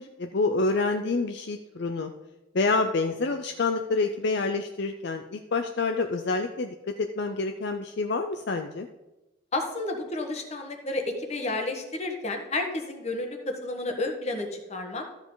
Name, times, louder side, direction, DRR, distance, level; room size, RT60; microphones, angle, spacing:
voice 1, 0.0-2.1 2.5-8.9, left 3 dB, 55° left, 6 dB, 0.5 m, -27 dB
voice 2, 9.5-15.0, left 2 dB, 35° left, 3 dB, 1.3 m, -31 dB
13.0 x 7.1 x 3.9 m, 1.0 s
head